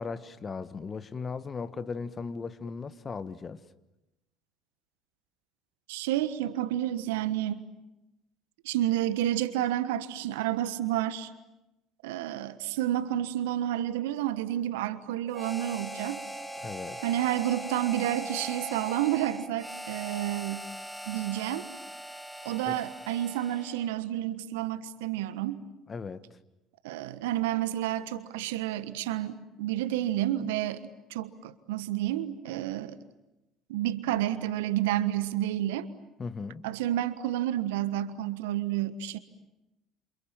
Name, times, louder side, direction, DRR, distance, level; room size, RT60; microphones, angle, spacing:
voice 1, 0.0-3.6 16.6-17.0 22.7-22.8 25.9-26.2 36.2-36.6, left 5 dB, 30° left, 1.4 m, -37 dB
voice 2, 5.9-7.6 8.6-11.3 12.0-16.2 17.0-20.7 21.1-21.7 22.4-25.6 26.8-30.8 31.1-33.0 33.7-35.9 36.6-39.2, right 13 dB, 75° right, 1.3 m, -30 dB
Harmonica, 15.3-24.0, right 1 dB, ahead, 2.1 m, -40 dB
28.5 x 28.0 x 7.4 m
hypercardioid pair, 60°, 0 cm